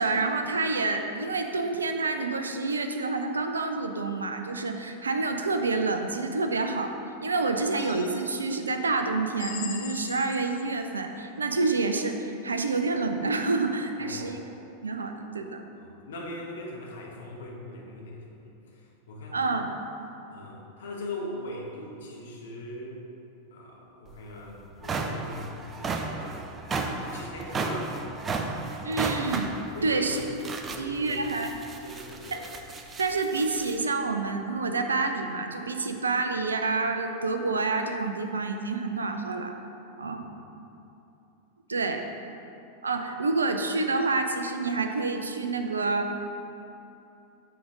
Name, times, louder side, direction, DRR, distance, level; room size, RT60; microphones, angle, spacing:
voice 1, 0.0-6.9 7.2-14.4 14.8-15.6 19.3-19.7 28.8-30.2 30.8-31.5 32.3-32.4 33.0-39.5 40.0-40.3 41.7-42.0 42.8-46.2, right 3 dB, 75° right, 6 dB, 0.5 m, -28 dB
sound 1, 7.8-8.6 9.4-10.8, left 9 dB, 45° left, 0.6 m, -41 dB
voice 2, 14.0-14.4 15.7-19.6 20.3-23.0 23.5-28.1 29.7-30.4 30.7-31.4 31.8-32.5 40.0-40.6 41.7-41.9, left 1 dB, 60° left, -2 dB, 1.2 m, -41 dB
sound 2, 24.1-24.2 24.6-33.8, right 3 dB, 20° right, 0.5 m, -34 dB
7.8 x 3.8 x 4.7 m, 2.9 s
figure-of-eight pair, 90°, 0 cm